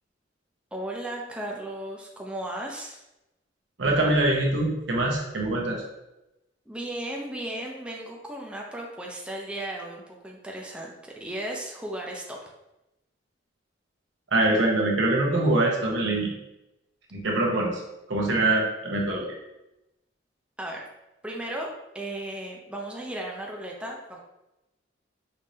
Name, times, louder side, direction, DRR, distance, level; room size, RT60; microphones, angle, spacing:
voice 1, 0.7-3.0 6.7-10.9 11.2-12.4 20.6-20.9 21.2-24.2, right 1 dB, 5° right, -1 dB, 0.5 m, -35 dB
voice 2, 3.8-5.8 14.3-16.3 17.1-17.7 18.1-19.3, right 2 dB, 80° right, -1 dB, 1.0 m, -23 dB
5.3 x 3.2 x 2.7 m, 0.93 s
head